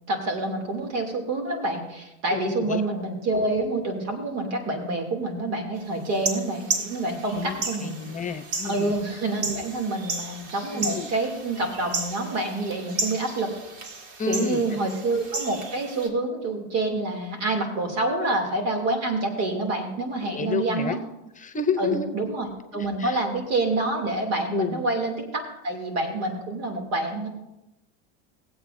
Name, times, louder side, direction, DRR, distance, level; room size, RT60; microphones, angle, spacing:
voice 1, 0.1-7.9 8.6-13.5 14.3-21.0 21.8-27.3, right 2 dB, 80° right, 3 dB, 2.7 m, -27 dB
voice 2, 2.3-2.8 7.3-8.9 10.7-11.1 14.2-14.8 20.3-21.0 21.4-22.1 22.7-23.2 24.5-24.8, left 6 dB, 25° left, 10 dB, 0.7 m, -30 dB
sound 1, 6.1-16.1, right 3 dB, 55° right, 2.0 m, -34 dB
19.5 x 8.0 x 2.6 m, 0.92 s
supercardioid pair, 105°, 35 cm